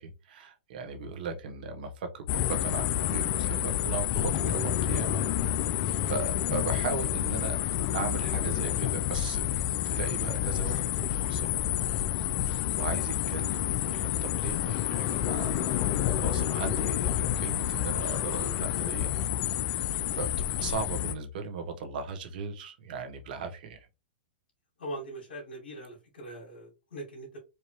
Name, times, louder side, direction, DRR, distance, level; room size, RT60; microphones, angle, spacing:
voice 1, 0.0-5.2 5.6-5.8 6.1-7.6 7.9-9.5 9.8-11.5 12.8-15.9 16.2-19.1 19.5-23.9, right 4 dB, 60° right, 6 dB, 1.3 m, -37 dB
sound 1, 2.3-21.1, left 11 dB, 40° left, 0.5 m, -29 dB
voice 2, 24.8-27.4, right 1 dB, 75° left, -4 dB, 2.3 m, -41 dB
4.6 x 2.8 x 3.1 m, 0.27 s
hypercardioid pair, 120°, 5 cm